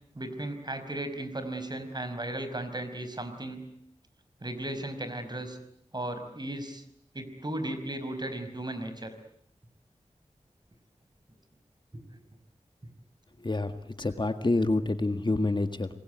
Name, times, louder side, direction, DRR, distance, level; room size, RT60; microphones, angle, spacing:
voice 1, 0.1-3.6 4.4-5.6 5.9-6.8 7.1-9.1, right 1 dB, 35° right, 9 dB, 5.2 m, -35 dB
voice 2, 14.0-16.0, left 2 dB, 40° left, 9 dB, 1.9 m, -27 dB
27.5 x 21.0 x 9.3 m, 0.69 s
wide cardioid pair, 55°, 12 cm